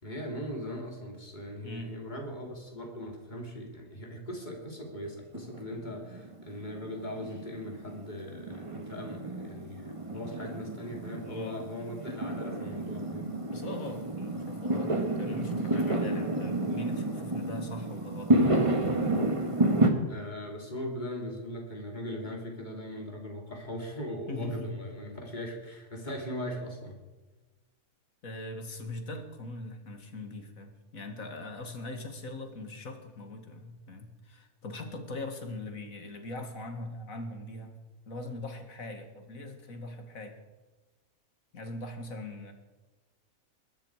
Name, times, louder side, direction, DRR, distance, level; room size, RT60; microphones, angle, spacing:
voice 1, 0.0-13.3 20.1-27.0, equal, 30° left, 1 dB, 3.3 m, -39 dB
Fireworks, 5.3-19.9, right 2 dB, 20° right, 1.6 m, -30 dB
voice 2, 11.2-11.6 13.5-18.4 24.3-24.7 28.2-37.8 38.1-40.4 41.5-42.5, left 2 dB, 65° left, 5 dB, 2.4 m, -41 dB
21.5 x 12.5 x 4.8 m, 1.2 s
omnidirectional pair, 1.5 m